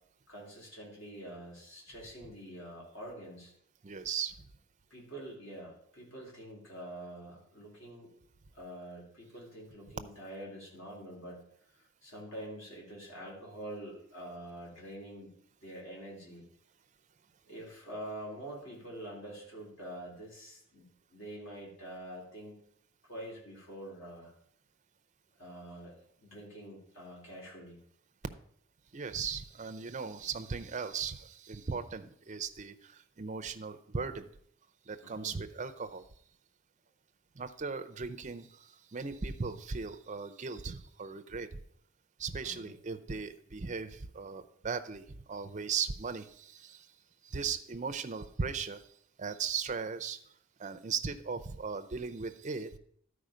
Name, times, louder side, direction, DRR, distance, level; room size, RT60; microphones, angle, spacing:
voice 1, 0.3-3.5 4.9-8.1 8.5-11.4 11.8-15.3 15.6-16.4 17.5-22.6 23.0-24.3 25.4-27.8 35.0-35.4 42.4-42.7, right 1 dB, 60° left, -4 dB, 3.9 m, -46 dB
voice 2, 3.8-4.3 28.9-34.3 34.9-36.0 37.4-38.5 38.9-41.5 42.2-46.8 47.3-48.8 49.2-50.2 50.6-52.7, right 5 dB, 35° right, 9 dB, 0.5 m, -37 dB
12.0 x 4.9 x 5.0 m, 0.66 s
head